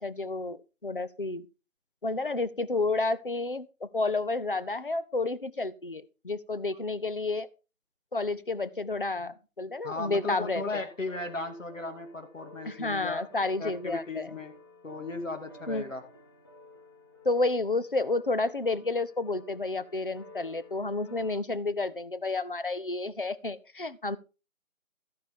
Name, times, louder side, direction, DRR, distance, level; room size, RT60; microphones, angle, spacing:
voice 1, 0.0-1.5 2.0-7.5 8.1-10.8 12.6-14.3 15.7-15.9 17.2-24.2, left 3 dB, 40° left, 15 dB, 0.8 m, -30 dB
voice 2, 9.8-13.3 13.6-14.5 14.8-16.0, left 3 dB, 65° left, 5 dB, 2.5 m, -36 dB
sound 1, 9.8-21.3, left 1 dB, 20° left, 1.6 m, -53 dB
14.0 x 9.8 x 3.7 m, 0.31 s
figure-of-eight pair, 170°, 41 cm